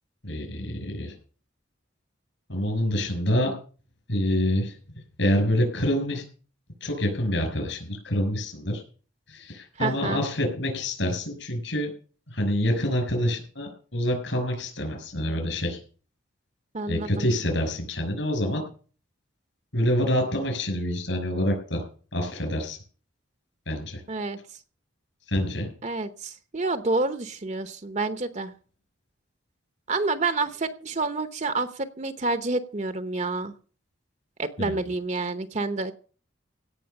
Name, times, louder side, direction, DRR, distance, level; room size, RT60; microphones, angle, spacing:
voice 1, 0.2-1.2 2.5-3.5 4.1-6.2 6.8-8.8 9.3-11.9 12.3-15.8 16.9-18.6 19.7-21.8 22.1-22.8 23.7-24.0 25.3-25.7 34.6-34.8, left 1 dB, 70° left, 3 dB, 6.0 m, -27 dB
voice 2, 9.8-10.2 16.7-17.3 24.1-24.4 25.8-28.5 29.9-33.5 34.4-35.9, right 3 dB, 35° right, 10 dB, 0.8 m, -28 dB
17.0 x 6.2 x 8.7 m, 0.41 s
head